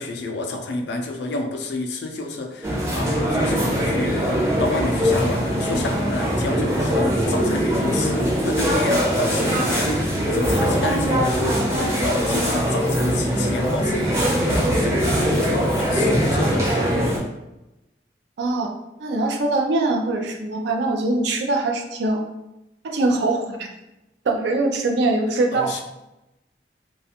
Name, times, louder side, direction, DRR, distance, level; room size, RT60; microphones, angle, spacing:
voice 1, 0.0-16.7 25.5-25.8, left 2 dB, 80° left, 3 dB, 0.4 m, -29 dB
sound 1, 2.6-17.2, equal, 15° right, 0.5 m, -21 dB
voice 2, 18.4-22.2 22.8-23.7 24.2-25.7, right 2 dB, 80° right, 3 dB, 0.4 m, -22 dB
2.4 x 2.3 x 2.7 m, 0.94 s
head